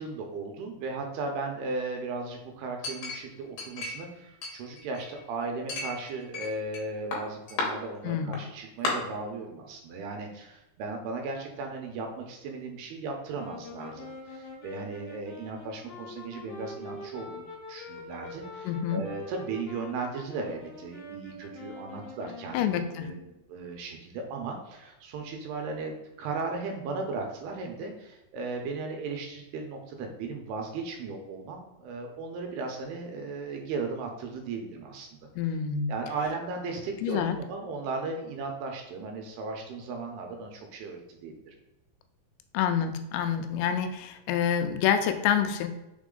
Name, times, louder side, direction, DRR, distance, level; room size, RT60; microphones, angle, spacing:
voice 1, 0.0-35.1 35.9-41.5, right 3 dB, 75° right, 3 dB, 2.6 m, -36 dB
Chink clink, 2.8-4.1 4.4-5.2 5.7-6.8 7.1-7.7 8.3-8.4 8.8-8.9, left 3 dB, 70° left, 3.0 m, -33 dB
voice 2, 8.0-8.4 18.7-19.0 22.5-23.1 35.4-35.9 37.0-37.4 42.5-45.7, left 8 dB, 90° left, 8 dB, 2.8 m, -27 dB
sound 1, 13.3-23.4, left 2 dB, 45° left, 3.0 m, -44 dB
6.0 x 4.2 x 3.7 m, 0.93 s
omnidirectional pair, 4.9 m